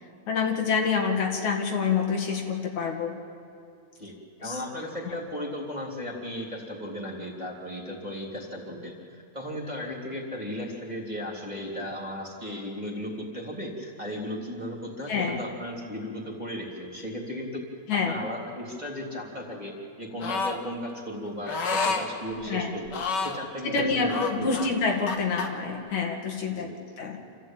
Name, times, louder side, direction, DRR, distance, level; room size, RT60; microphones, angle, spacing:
voice 1, 0.3-3.2 4.4-4.6 15.1-15.4 17.9-18.2 22.5-22.7 23.6-26.7 27.0-27.2, left 5 dB, 75° left, 2 dB, 3.4 m, -27 dB
voice 2, 4.4-17.6 17.9-22.9 23.3-24.5 26.5-26.8, left 1 dB, 15° right, -2 dB, 3.1 m, -36 dB
sound 1, 20.2-20.6 21.5-22.1 22.9-23.4 24.1-25.5, left 4 dB, 45° left, 1.7 m, -29 dB
27.5 x 14.5 x 9.0 m, 2.5 s
omnidirectional pair, 3.4 m